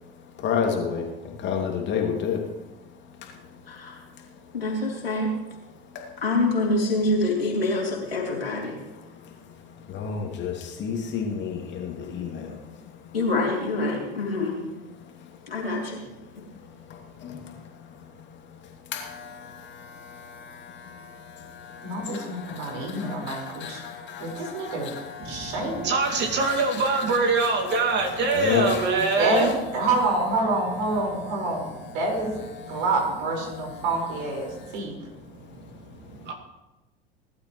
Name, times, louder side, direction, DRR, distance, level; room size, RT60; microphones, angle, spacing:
voice 1, 0.4-2.5 3.2-3.4 5.9-6.1 8.9-13.2 15.2-15.3 16.7-27.8 28.1-29.5 31.8-31.9 32.6-32.8 34.5-34.8 35.6-35.7, left 7 dB, 40° left, 1 dB, 2.4 m, -33 dB
voice 2, 3.7-4.0 4.5-5.3 6.2-8.8 13.1-14.6 15.5-16.1, left 2 dB, 80° left, -2 dB, 3.5 m, -26 dB
voice 3, 21.8-23.8 24.2-24.9 25.2-25.9 28.9-29.5 29.7-34.9, right 2 dB, 60° right, 0 dB, 4.9 m, -27 dB
voice 4, 25.2-29.6 34.9-35.0 35.3-36.3, right 3 dB, 35° right, 2 dB, 2.3 m, -25 dB
20.0 x 12.0 x 3.1 m, 1.0 s
figure-of-eight pair, 75°, 29 cm